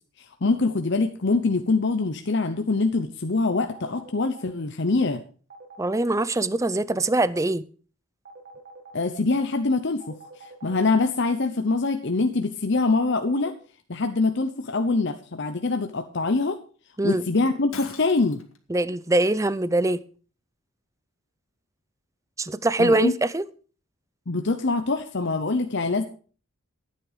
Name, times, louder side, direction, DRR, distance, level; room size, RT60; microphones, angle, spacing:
voice 1, 0.2-5.2 8.9-13.5 13.9-16.6 17.0-18.4 22.8-23.1 24.3-26.0, left 3 dB, 55° left, 0.9 m, -24 dB
sound 1, 3.7-4.5 5.5-6.3 8.2-9.0 10.0-10.8 12.7-13.5, right 4 dB, 45° right, 2.2 m, -45 dB
voice 2, 5.8-7.6 17.0-17.2 18.7-20.0 22.4-23.5, right 2 dB, 15° right, 0.5 m, -23 dB
Shatter, 17.7-18.6, left 6 dB, 75° left, 2.0 m, -41 dB
14.0 x 9.2 x 5.1 m
head